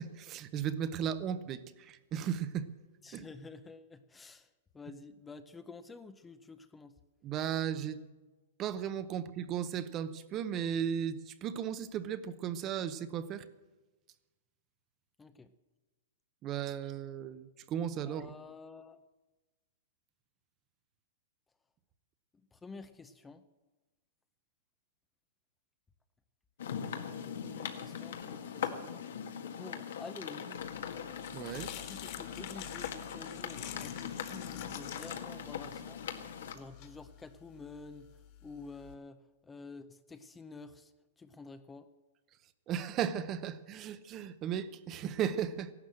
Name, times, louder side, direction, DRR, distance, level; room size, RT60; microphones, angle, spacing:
voice 1, 0.0-2.7 3.1-3.3 7.2-8.0 8.6-13.5 16.4-18.3 31.3-31.7 42.7-45.7, right 9 dB, 25° right, 0.8 m, -36 dB
voice 2, 3.0-4.5 4.7-7.0 15.2-15.5 18.1-19.0 22.5-23.4 27.4-29.0 29.6-30.6 31.8-36.0 36.5-38.1 38.4-40.9 41.2-41.9, left 4 dB, 10° left, 0.6 m, -49 dB
sound 1, 26.6-36.5, left 8 dB, 75° left, 1.8 m, -41 dB
sound 2, 30.7-38.9, left 11 dB, 40° left, 2.1 m, -49 dB
15.5 x 12.0 x 7.7 m
hypercardioid pair, 150°, 0 cm